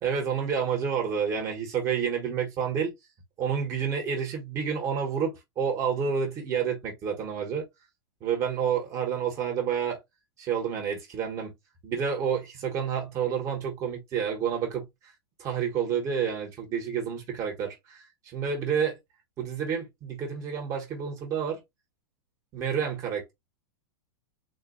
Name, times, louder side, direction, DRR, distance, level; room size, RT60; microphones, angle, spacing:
voice 1, 0.0-2.9 3.4-7.6 8.2-10.0 10.4-11.5 11.8-14.9 15.4-19.0 19.4-21.6 22.5-23.3, right 7 dB, 20° right, 1.1 m, -29 dB
3.9 x 2.2 x 3.8 m
supercardioid pair, 165°, 14 cm